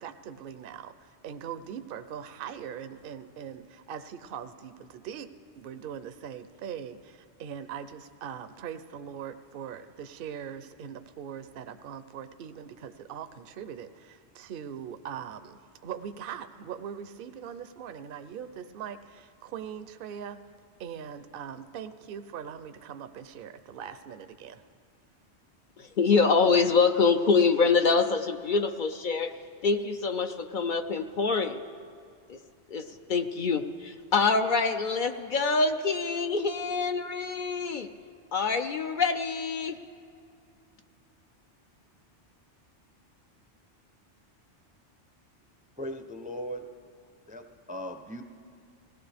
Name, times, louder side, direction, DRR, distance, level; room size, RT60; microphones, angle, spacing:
voice 1, 0.0-5.3 5.6-20.4 20.8-24.6, right 8 dB, 60° right, 10 dB, 0.7 m, -41 dB
voice 2, 25.8-29.3 29.6-31.6 32.3-32.4 32.7-37.9 38.3-39.8, left 4 dB, 55° left, 7 dB, 0.6 m, -25 dB
voice 3, 45.8-46.6 47.3-47.4 47.7-48.2, equal, 10° right, 6 dB, 0.5 m, -37 dB
21.5 x 17.0 x 3.4 m, 2.4 s
omnidirectional pair, 1.2 m